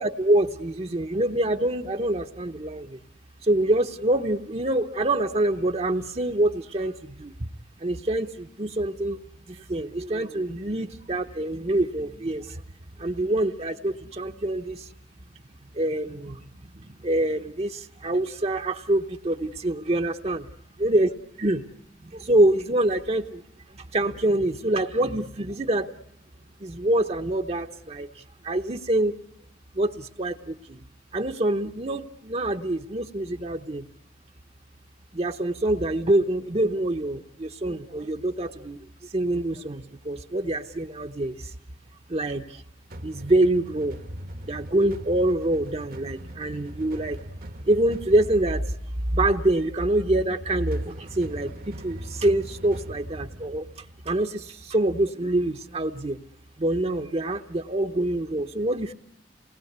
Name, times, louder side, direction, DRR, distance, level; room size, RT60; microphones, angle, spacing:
voice 1, 0.0-3.0 3.5-6.9 7.2-7.3 7.8-9.2 9.5-12.6 13.0-14.8 15.8-16.4 17.0-20.4 20.8-21.1 21.4-21.6 22.0-23.4 23.9-25.9 26.6-28.1 28.4-29.1 29.8-30.8 31.1-33.8 35.1-38.8 39.1-41.3 42.1-42.4 43.0-44.0 44.5-47.2 47.7-48.6 49.1-53.6 54.1-56.2 56.6-58.9, right 1 dB, 35° right, 6 dB, 0.9 m, -25 dB
sound 1, 42.9-54.8, equal, 55° right, 1.2 m, -41 dB
29.0 x 20.0 x 8.0 m, 0.77 s
head